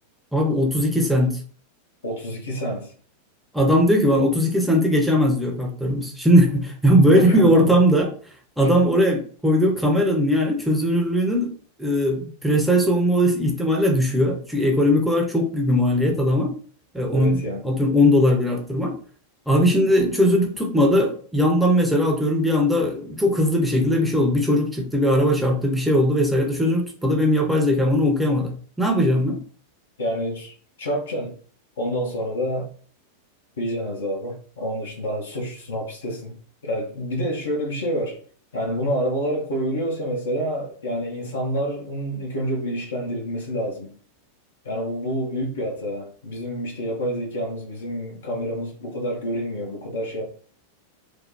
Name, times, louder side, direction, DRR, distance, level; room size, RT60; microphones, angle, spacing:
voice 1, 0.3-1.4 3.5-8.1 8.6-11.5 11.8-16.5 16.9-18.9 19.5-29.4, equal, ahead, 0.7 m, -19 dB
voice 2, 2.0-2.9 7.0-7.7 17.1-17.7 30.0-31.3 31.8-32.7 33.6-36.4 36.6-38.2 38.5-43.9 44.6-50.2, equal, 65° left, 1.0 m, -28 dB
3.3 x 2.2 x 4.0 m
figure-of-eight pair, 90°, 0 cm